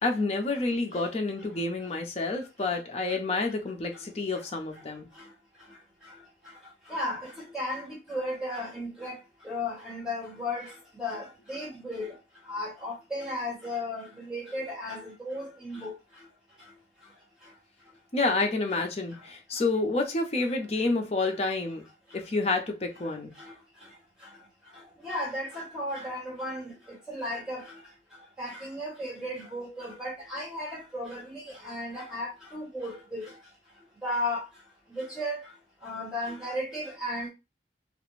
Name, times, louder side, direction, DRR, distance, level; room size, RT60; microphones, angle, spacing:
voice 1, 0.0-5.1 18.1-21.8 22.1-23.3, left 3 dB, 35° left, 0.5 m, -29 dB
voice 2, 6.9-7.2 7.5-9.1 9.4-10.7 11.0-12.1 12.5-15.9 25.0-26.6 27.1-27.6 28.4-33.2 34.0-34.4 35.0-35.4 35.8-37.3, left 1 dB, 5° right, 1.2 m, -34 dB
2.4 x 2.1 x 3.0 m
head